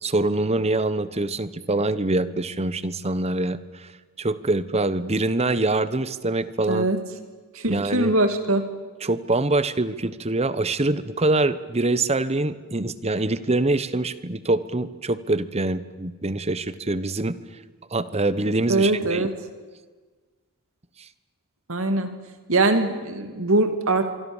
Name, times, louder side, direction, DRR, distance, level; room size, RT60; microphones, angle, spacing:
voice 1, 0.0-3.9 4.2-6.9 7.7-8.1 9.0-17.4 17.9-19.2, right 2 dB, 30° right, 15 dB, 1.0 m, -24 dB
voice 2, 6.7-7.0 7.5-8.7 18.7-19.3 21.7-22.1 22.5-24.0, right 2 dB, 65° right, 7 dB, 2.6 m, -22 dB
25.5 x 24.5 x 7.3 m, 1.4 s
head